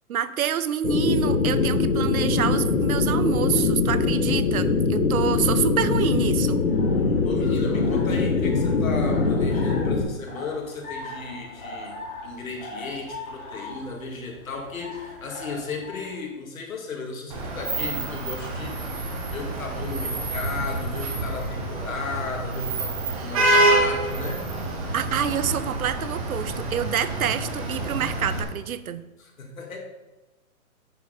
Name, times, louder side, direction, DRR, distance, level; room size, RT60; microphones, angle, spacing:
voice 1, 0.1-6.6 23.1-23.4 24.9-29.0, right 9 dB, 75° right, 14 dB, 0.7 m, -27 dB
sound 1, 0.8-10.0, left 4 dB, 85° left, 1.4 m, -22 dB
sound 2, 6.5-16.2, left 2 dB, 35° left, 2.4 m, -41 dB
voice 2, 7.2-12.0 12.2-18.9 19.3-24.5 29.2-29.8, left 4 dB, 70° left, 2 dB, 2.2 m, -35 dB
Vehicle horn car horn honking / Traffic noise roadway noise, 17.3-28.4, right 2 dB, 25° right, 1.2 m, -27 dB
9.3 x 4.8 x 5.3 m, 1.1 s
hypercardioid pair, 170°, 42 cm